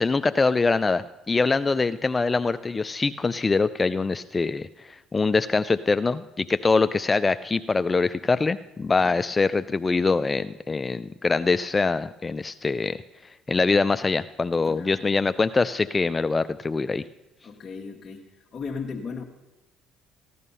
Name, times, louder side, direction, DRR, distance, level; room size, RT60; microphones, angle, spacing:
voice 1, 0.0-17.0, left 4 dB, 25° left, 13 dB, 0.4 m, -24 dB
voice 2, 14.6-15.1 17.4-19.2, left 5 dB, 45° left, -1 dB, 1.2 m, -36 dB
15.0 x 11.0 x 5.5 m, 1.1 s
supercardioid pair, 80°, 0 cm